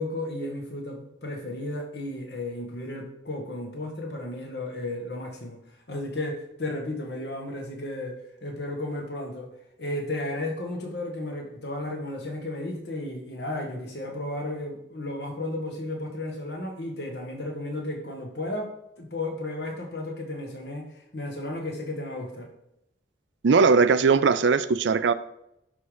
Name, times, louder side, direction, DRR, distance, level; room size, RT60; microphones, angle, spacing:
voice 1, 0.0-5.6 5.9-9.5 9.8-18.7 19.0-22.5, left 1 dB, 60° left, 2 dB, 1.6 m, -33 dB
voice 2, 23.4-25.1, right 5 dB, 70° right, 14 dB, 0.4 m, -19 dB
11.5 x 3.8 x 5.0 m, 0.82 s
head